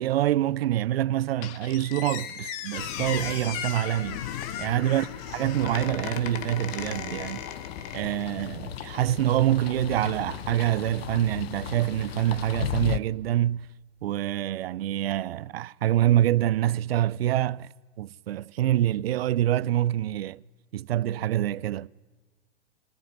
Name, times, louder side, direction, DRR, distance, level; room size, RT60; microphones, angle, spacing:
voice 1, 0.0-4.2 4.6-7.4 7.9-13.7 14.0-17.7 18.0-20.4 20.7-21.9, right 13 dB, 60° right, 0.6 m, -26 dB
Squeak, 1.4-8.3, left 9 dB, 35° left, 1.8 m, -36 dB
sound 1, 2.8-13.0, left 11 dB, 60° left, 0.9 m, -37 dB
22.5 x 16.0 x 9.4 m
hypercardioid pair, 120°, 34 cm